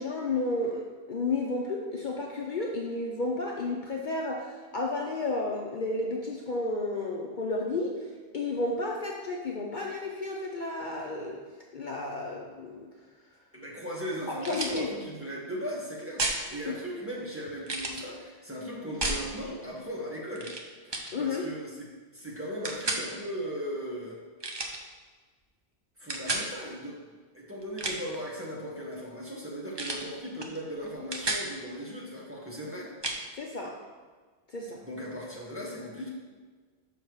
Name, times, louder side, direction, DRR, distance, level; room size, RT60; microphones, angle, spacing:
voice 1, 0.0-8.0 8.3-11.4 11.7-12.9 14.3-14.9 16.6-16.7 21.1-21.4 33.4-33.8 34.5-34.8, left 2 dB, 50° left, -1 dB, 0.8 m, -32 dB
voice 2, 13.5-20.5 20.8-21.9 22.1-24.2 26.0-27.0 27.3-32.9 34.8-36.1, equal, 10° right, -5 dB, 1.5 m, -37 dB
sound 1, 14.4-14.8 16.2-16.4 17.6-18.0 19.0-19.2 20.4-20.6 20.9-21.1 22.6-23.0 24.4-24.8 26.1-26.5 27.6-28.2 29.8-30.1 30.4-30.6 30.9-31.5 33.0-33.2, right 2 dB, 25° right, 0.7 m, -31 dB
6.9 x 5.7 x 4.6 m, 1.4 s
omnidirectional pair, 1.1 m